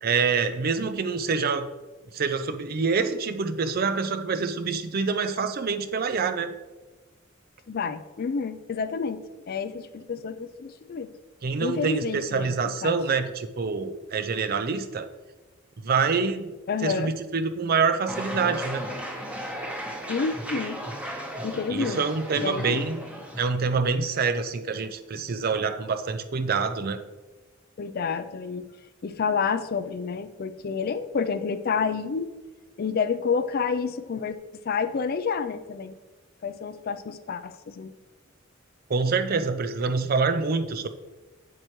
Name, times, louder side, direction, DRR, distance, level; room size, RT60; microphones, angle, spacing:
voice 1, 0.0-1.7 2.1-6.6 11.4-15.1 15.8-16.6 16.8-18.8 21.7-23.0 23.4-27.0 38.9-40.9, right 5 dB, 50° right, 9 dB, 0.5 m, -26 dB
voice 2, 7.7-11.1 11.6-12.5 12.8-13.0 16.7-17.1 20.1-20.8 21.4-22.0 22.4-22.9 27.8-28.6 29.0-32.3 32.8-34.4 34.7-35.9 36.4-37.9, left 5 dB, 50° left, 12 dB, 0.4 m, -29 dB
sound 1, 18.1-23.4, equal, 5° right, 0.9 m, -35 dB
8.0 x 7.4 x 3.1 m, 1.2 s
head